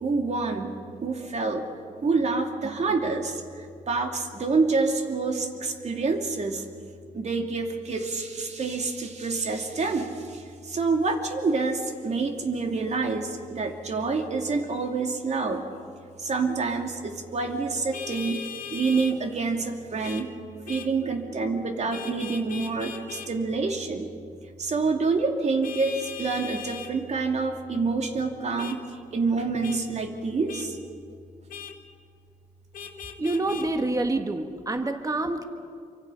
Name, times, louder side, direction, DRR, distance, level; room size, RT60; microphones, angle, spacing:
voice 1, 0.0-0.7 1.0-1.6 2.0-3.4 3.9-6.6 7.1-15.6 16.2-20.3 20.7-24.1 24.6-28.8 29.1-30.7, right 4 dB, 55° right, 4 dB, 2.7 m, -27 dB
Vehicle horn car horn honking, 17.9-19.2 20.0-20.3 20.7-20.9 21.9-23.3 25.6-26.9 28.6-28.8 29.6-29.8 30.5-30.7 31.5-31.7 32.7-33.7, left 6 dB, 90° left, 1.7 m, -38 dB
voice 2, 33.2-35.4, right 2 dB, 25° right, 6 dB, 1.5 m, -27 dB
27.5 x 24.5 x 5.7 m, 2.2 s
cardioid pair, 90°, 14 cm